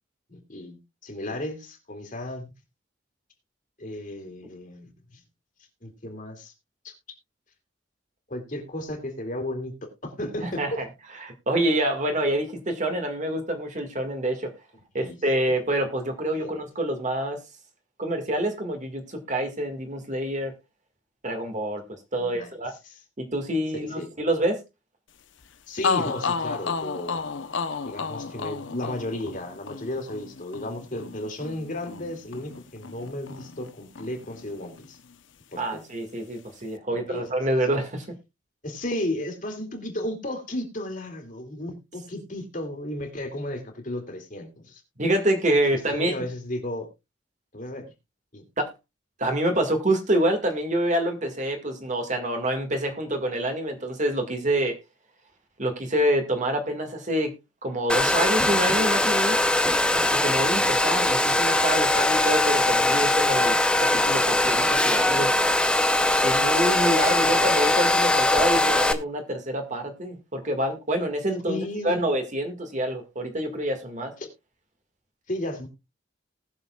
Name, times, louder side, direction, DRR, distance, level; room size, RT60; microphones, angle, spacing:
voice 1, 0.3-2.5 3.8-5.2 5.8-6.5 6.8-6.9 8.3-10.8 15.0-15.2 16.3-16.5 22.2-22.5 22.8-23.0 23.7-24.1 25.7-27.3 27.8-35.0 35.5-35.8 36.9-37.2 38.6-44.8 45.7-46.9 47.5-47.9 48.3-48.5 67.2-67.4 71.5-72.0 74.2-74.3 75.3-75.7, left 1 dB, 40° left, 3 dB, 2.6 m, -34 dB
voice 2, 10.4-10.8 11.2-14.5 14.9-17.4 18.0-20.5 21.2-22.7 23.2-24.6 35.6-38.2 45.0-46.1 48.6-48.7 49.2-54.8 55.6-57.3 57.6-59.4 60.1-65.3 66.2-74.1, right 1 dB, 40° right, 5 dB, 1.9 m, -27 dB
sound 1, 25.4-25.5 25.8-33.7 34.0-35.1, left 5 dB, 70° left, 0.8 m, -32 dB
Domestic sounds home sounds, 57.9-68.9, left 2 dB, 5° left, 0.6 m, -21 dB
19.5 x 6.9 x 2.3 m, 0.23 s
head